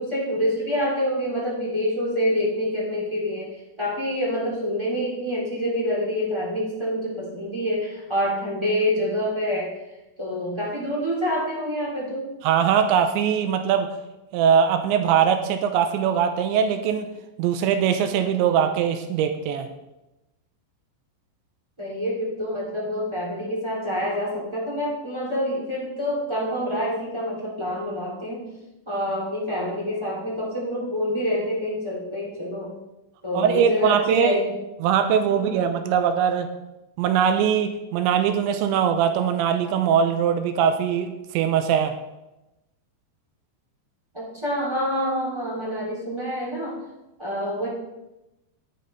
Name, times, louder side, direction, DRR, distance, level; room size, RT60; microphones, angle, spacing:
voice 1, 0.0-9.8 10.2-12.3 21.8-28.5 28.8-32.7 33.2-34.6 35.3-35.5 44.1-46.8 47.2-47.7, equal, 30° right, -5 dB, 0.4 m, -27 dB
voice 2, 12.4-13.9 14.3-17.1 17.4-19.7 33.3-34.4 34.8-36.5 37.0-41.9, right 8 dB, 90° right, 7 dB, 3.0 m, -21 dB
12.0 x 9.6 x 4.1 m, 0.97 s
omnidirectional pair, 5.3 m